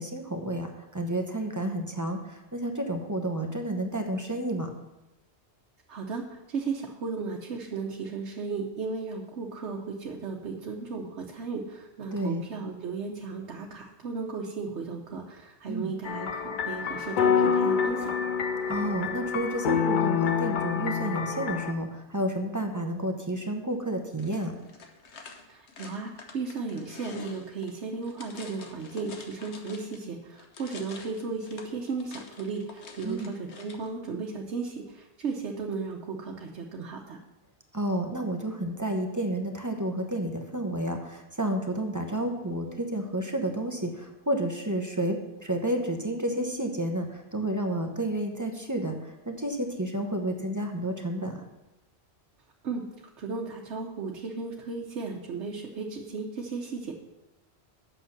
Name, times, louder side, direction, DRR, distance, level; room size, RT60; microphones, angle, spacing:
voice 1, 0.0-4.7 12.1-12.4 15.7-15.9 18.7-24.5 33.0-33.3 37.7-51.4, right 1 dB, 20° right, 3 dB, 0.9 m, -31 dB
voice 2, 5.9-18.1 25.5-37.2 52.6-52.8 53.2-56.9, right 4 dB, 85° right, -1 dB, 1.2 m, -35 dB
sound 1, 16.0-21.7, left 6 dB, 55° left, 0.6 m, -27 dB
sound 2, 24.1-30.1 30.4-33.9, left 4 dB, 75° left, 1.3 m, -47 dB
8.2 x 6.8 x 5.8 m, 0.97 s
omnidirectional pair, 1.1 m